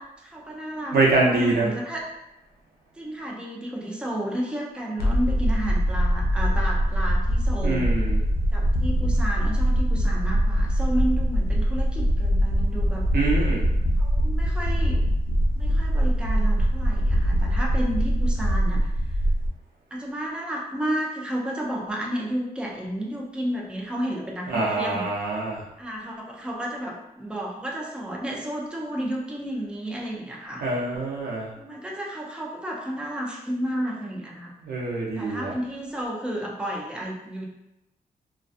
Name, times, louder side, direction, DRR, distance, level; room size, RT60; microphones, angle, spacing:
voice 1, 0.0-2.0 2.9-7.9 8.5-13.0 14.0-15.0 15.5-19.2 19.9-25.0 25.8-30.7 31.6-34.5 35.2-37.5, right 1 dB, 5° right, -2 dB, 0.4 m, -32 dB
voice 2, 0.9-1.7 7.6-8.2 13.1-13.6 24.5-25.6 30.6-31.5 34.6-35.5, right 3 dB, 85° right, -3 dB, 0.6 m, -24 dB
sound 1, 5.0-19.5, equal, 90° left, 0.5 m, -22 dB
2.3 x 2.2 x 2.5 m, 0.90 s
cardioid pair, 95°, 16 cm